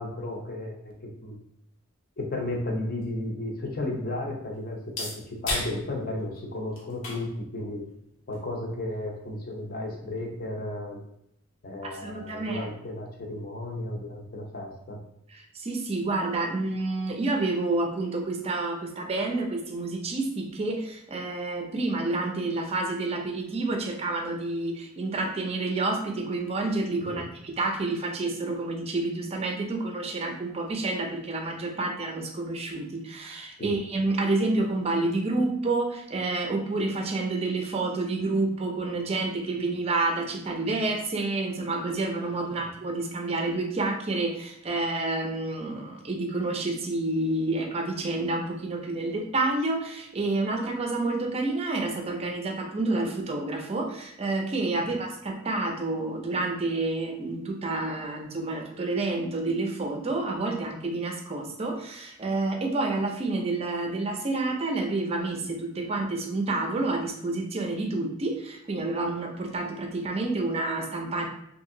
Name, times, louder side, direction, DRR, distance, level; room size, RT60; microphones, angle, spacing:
voice 1, 0.0-1.4 2.2-7.8 8.3-11.0 11.6-15.0 27.0-27.3 33.6-33.7 54.8-54.9, left 1 dB, 50° left, 0 dB, 0.6 m, -34 dB
sound 1, 3.0-10.4, left 2 dB, 80° left, 0.8 m, -40 dB
voice 2, 11.8-12.7 15.3-71.3, right 2 dB, 30° right, 3 dB, 0.4 m, -29 dB
2.8 x 2.6 x 2.6 m, 0.76 s
head